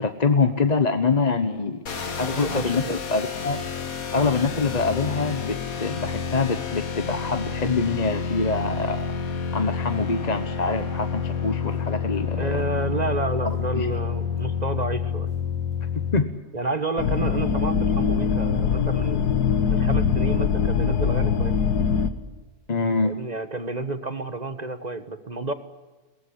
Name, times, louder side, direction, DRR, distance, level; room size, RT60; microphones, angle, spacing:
voice 1, 0.0-1.8 2.2-2.8 3.1-3.6 4.1-9.1 9.5-12.6 13.4-13.9 16.1-16.3 22.7-23.2, left 4 dB, 30° left, 8 dB, 1.1 m, -25 dB
sound 1, 1.9-16.2, left 6 dB, 60° left, 2.2 m, -29 dB
voice 2, 2.3-3.0 12.4-15.3 16.5-19.2 19.7-21.5 23.0-25.5, right 2 dB, 30° right, 10 dB, 1.4 m, -30 dB
sound 2, 17.0-22.1, left 6 dB, 80° left, 2.0 m, -22 dB
23.0 x 18.0 x 10.0 m, 1.2 s
omnidirectional pair, 1.7 m